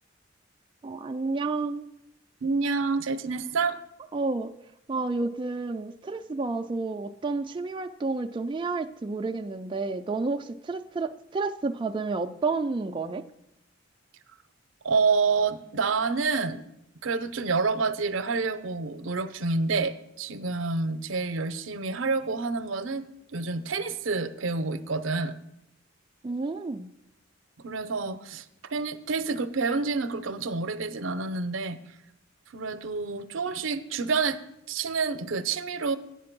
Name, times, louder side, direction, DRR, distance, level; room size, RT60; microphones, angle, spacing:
voice 1, 0.8-1.9 4.1-4.5 4.9-13.2 26.2-26.9, right 3 dB, 25° right, 5 dB, 0.3 m, -30 dB
voice 2, 2.4-3.8 14.8-16.6 17.0-23.0 23.3-25.3 27.6-28.4 28.7-31.8 32.5-34.4 34.7-36.0, right 4 dB, 75° right, 12 dB, 0.6 m, -28 dB
8.5 x 7.0 x 5.9 m, 0.84 s
head